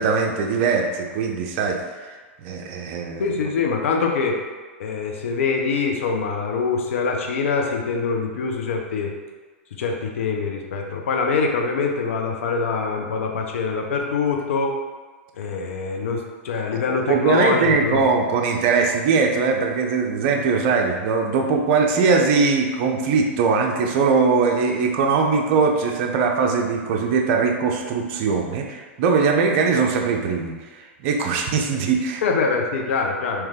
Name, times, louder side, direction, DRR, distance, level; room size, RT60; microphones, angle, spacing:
voice 1, 0.0-3.3 16.7-32.2, right 5 dB, 50° right, 2 dB, 0.6 m, -21 dB
voice 2, 3.2-4.4 4.8-9.1 9.8-14.8 15.4-18.0 32.2-33.5, left 4 dB, 70° left, 1 dB, 0.7 m, -24 dB
3.3 x 3.0 x 3.6 m, 1.3 s
hypercardioid pair, 100°, 7 cm